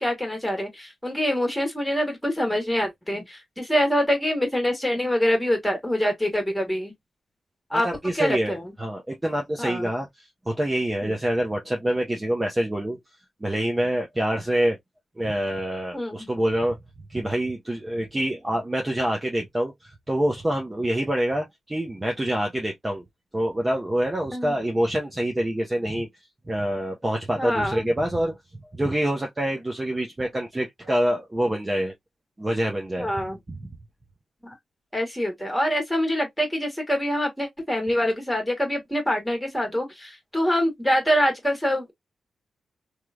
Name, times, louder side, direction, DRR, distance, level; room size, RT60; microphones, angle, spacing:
voice 1, 0.0-6.9 7.7-7.9 8.1-8.7 9.6-9.9 11.0-11.1 15.9-16.3 24.3-24.5 27.4-27.9 33.0-33.4 34.4-34.5 34.9-41.9, equal, 5° left, 1.7 m, -25 dB
voice 2, 7.7-13.0 13.4-14.8 15.2-16.8 17.1-23.0 23.3-26.1 26.5-28.3 28.8-31.9 32.4-33.1, right 1 dB, 15° right, 0.7 m, -26 dB
3.2 x 2.9 x 2.3 m
wide cardioid pair, 125°, 0 cm